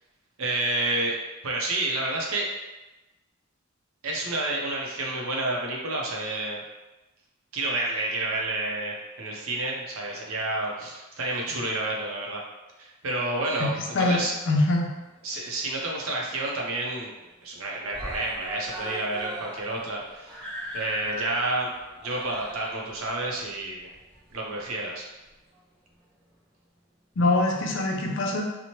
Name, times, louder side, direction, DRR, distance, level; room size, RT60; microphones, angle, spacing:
voice 1, 0.4-1.2 1.4-2.5 4.0-6.6 7.5-12.4 12.8-14.3 15.2-17.1 17.4-20.4 20.7-21.7 22.0-23.9 24.3-25.1, right 2 dB, 75° right, -2 dB, 0.6 m, -29 dB
voice 2, 13.9-14.9 27.2-28.4, left 2 dB, 60° left, 1 dB, 0.4 m, -23 dB
Screaming, 15.0-15.9 16.2-16.3 16.7-16.8 17.1-17.5 17.9-24.7 25.5-25.6, equal, 20° right, 0.6 m, -39 dB
2.8 x 2.1 x 2.9 m, 1.1 s
head